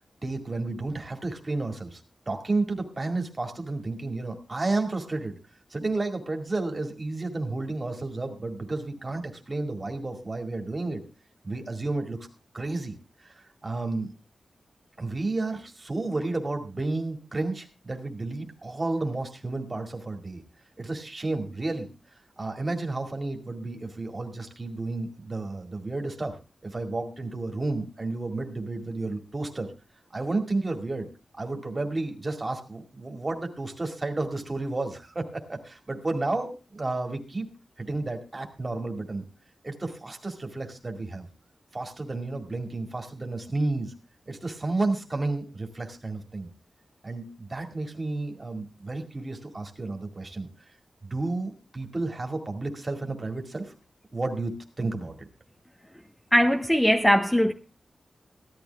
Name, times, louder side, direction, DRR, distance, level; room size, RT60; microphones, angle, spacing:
voice 1, 0.2-2.0 2.3-5.4 5.7-11.0 11.4-12.3 12.5-14.1 15.0-20.4 20.8-21.9 22.4-29.7 30.1-37.5 37.8-39.2 39.6-41.3 41.7-43.9 44.3-46.5 47.0-50.5 51.0-53.7 54.1-55.3, right 2 dB, 20° right, 2.1 m, -31 dB
voice 2, 56.3-57.5, equal, 5° left, 0.7 m, -20 dB
15.5 x 12.0 x 3.4 m
wide cardioid pair, 175°, 0 cm